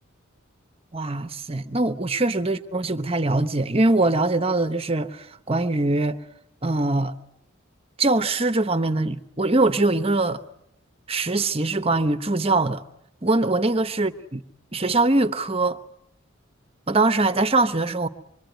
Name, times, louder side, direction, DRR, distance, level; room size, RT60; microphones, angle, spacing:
voice 1, 0.9-6.2 6.6-7.1 8.0-10.4 11.1-12.8 13.2-14.4 14.7-15.8 16.9-18.1, right 2 dB, 30° right, 1.0 m, -22 dB
25.5 x 23.0 x 9.2 m
head